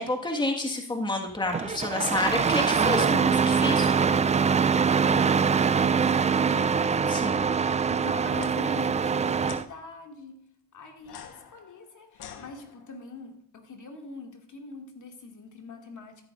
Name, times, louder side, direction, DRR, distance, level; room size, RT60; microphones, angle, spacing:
voice 1, 0.0-3.9 7.1-7.5, left 2 dB, 10° left, 2 dB, 1.7 m, -29 dB
Engine starting, 1.5-9.6, right 6 dB, 20° right, 0.3 m, -23 dB
voice 2, 5.0-10.4 10.7-16.3, left 3 dB, 50° left, 3 dB, 2.4 m, -44 dB
sound 1, 8.3-8.5 9.4-9.7 11.0-13.0, left 8 dB, 75° left, 1.3 m, -45 dB
13.0 x 11.5 x 2.5 m, 0.65 s
supercardioid pair, 70°, 38 cm